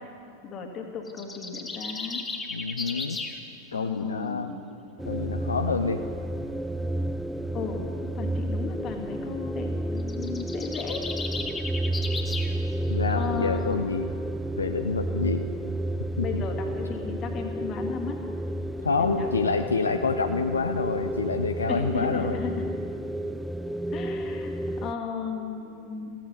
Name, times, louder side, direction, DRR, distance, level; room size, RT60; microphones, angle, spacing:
voice 1, 0.4-2.3 3.7-4.7 7.5-11.0 13.1-13.8 16.2-18.2 19.0-19.3 21.7-22.8 23.9-26.2, left 5 dB, 30° left, 3 dB, 1.9 m, -35 dB
sound 1, 1.1-3.4 10.0-12.5, left 4 dB, 15° left, 1.2 m, -35 dB
voice 2, 2.5-3.2 3.7-4.5 5.1-6.0 12.9-14.1 14.6-15.5 16.2-16.4 18.8-22.4, left 4 dB, 75° left, 8 dB, 0.5 m, -27 dB
sound 2, 5.0-24.9, right 1 dB, ahead, 0.4 m, -31 dB
15.5 x 14.5 x 5.4 m, 2.6 s
figure-of-eight pair, 90°, 0 cm